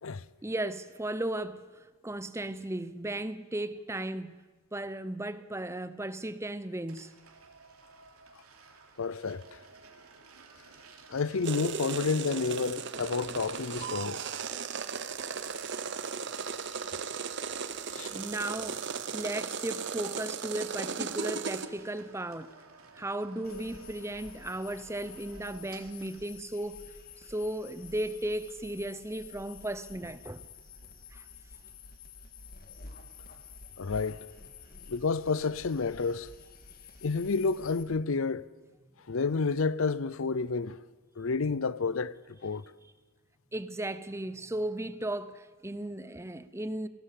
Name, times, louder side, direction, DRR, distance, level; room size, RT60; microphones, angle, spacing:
voice 1, 0.4-1.6 2.0-4.4 4.7-7.1 18.1-18.8 19.1-22.5 22.9-26.8 27.2-30.4 31.1-31.2 43.5-46.9, right 1 dB, 10° right, 0.7 m, -35 dB
sound 1, 6.9-26.4, right 4 dB, 85° right, 3.3 m, -53 dB
voice 2, 9.0-9.6 11.1-14.2 17.9-18.1 33.8-34.2 34.9-36.3 37.0-38.5 39.1-40.8 41.2-42.6, left 4 dB, 65° left, 0.6 m, -30 dB
sound 2, 11.4-21.7, right 6 dB, 55° right, 1.0 m, -36 dB
sound 3, 23.4-37.8, left 4 dB, 40° left, 2.0 m, -50 dB
19.0 x 17.5 x 8.4 m
head